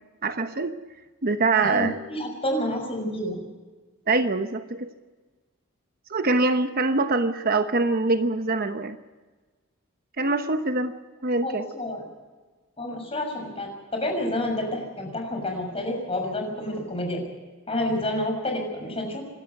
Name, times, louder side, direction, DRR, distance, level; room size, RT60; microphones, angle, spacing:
voice 1, 0.2-0.7 1.2-1.9 4.1-4.9 6.1-9.0 10.2-11.0 11.2-11.6, right 3 dB, 45° right, 8 dB, 1.1 m, -24 dB
voice 2, 1.5-3.4 11.4-12.0 12.8-17.2 17.7-19.2, left 1 dB, 30° left, 2 dB, 6.4 m, -29 dB
27.5 x 13.0 x 8.2 m, 1.3 s
head